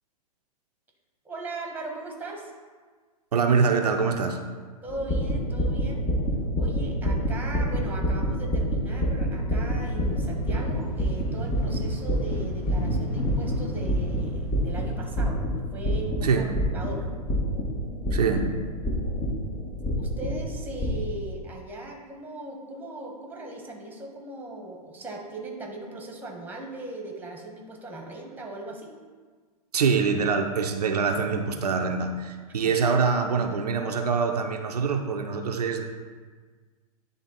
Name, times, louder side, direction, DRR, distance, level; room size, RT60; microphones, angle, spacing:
voice 1, 1.2-2.5 4.8-6.1 6.6-15.4 15.7-17.1 20.0-28.9 32.6-32.7, right 2 dB, 10° right, 1 dB, 1.5 m, -38 dB
voice 2, 3.3-4.4 16.2-16.5 18.1-18.5 29.7-35.8, right 5 dB, 80° right, 4 dB, 0.7 m, -24 dB
sound 1, 4.9-21.1, equal, 25° left, 1.5 m, -28 dB
sound 2, 9.5-15.0, left 1 dB, 75° left, 1.7 m, -35 dB
10.0 x 3.6 x 4.1 m, 1.5 s
hypercardioid pair, 110°, 20 cm